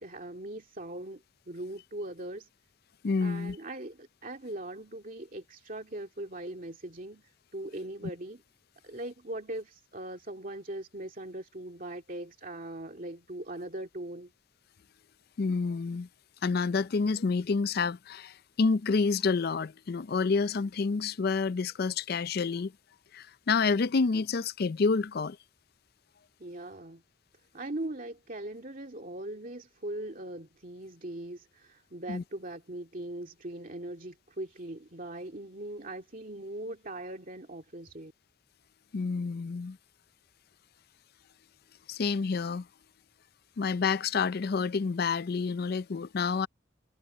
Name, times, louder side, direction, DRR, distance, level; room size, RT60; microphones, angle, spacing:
voice 1, 0.0-2.5 3.2-8.4 8.8-14.3 26.4-27.0 27.5-38.1, right 1 dB, 45° right, 2.3 m, -40 dB
voice 2, 3.0-3.6 15.4-16.1 16.4-22.7 23.1-25.4 32.1-32.2 38.9-39.8 41.9-42.7 43.6-46.5, left 4 dB, 50° left, 0.4 m, -28 dB
head